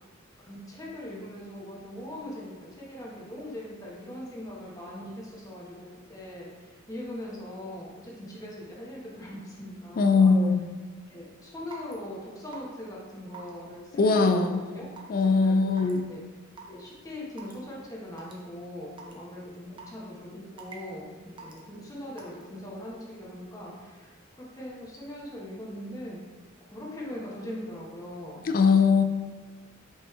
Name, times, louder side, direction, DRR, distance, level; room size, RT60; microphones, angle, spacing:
voice 1, 0.4-10.3 11.1-14.9 15.2-16.2 16.7-26.2 26.7-28.4, left 1 dB, 15° left, -5 dB, 1.0 m, -41 dB
voice 2, 10.0-10.6 13.9-14.6 15.1-16.0 28.4-29.0, left 4 dB, 45° left, 6 dB, 0.3 m, -21 dB
Raindrop / Water tap faucet / Drip, 11.7-11.9 12.5-12.8 13.3-13.5 14.1-14.3 15.0-15.2 15.8-16.0 16.6-16.7 17.4-17.5 18.2-18.3 19.0-19.1 19.8-20.0 20.6-20.9 21.4-21.6 22.2-22.4, right 5 dB, 25° right, 0.6 m, -44 dB
5.3 x 3.1 x 3.2 m, 1.4 s
head